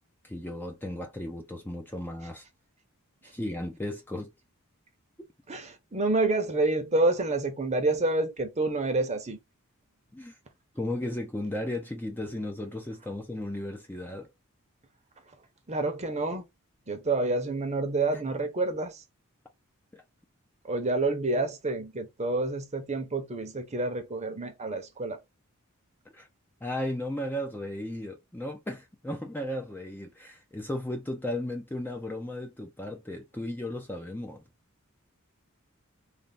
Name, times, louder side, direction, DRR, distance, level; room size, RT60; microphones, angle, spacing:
voice 1, 0.2-2.4 3.2-4.3 10.1-10.4 10.8-14.3 18.1-18.2 19.9-20.0 26.1-26.3 26.6-34.4, left 1 dB, 10° left, 0.5 m, -35 dB
voice 2, 5.5-9.4 15.7-16.5 16.9-19.0 20.6-25.2, right 2 dB, 30° right, 0.8 m, -28 dB
3.4 x 2.3 x 4.0 m
head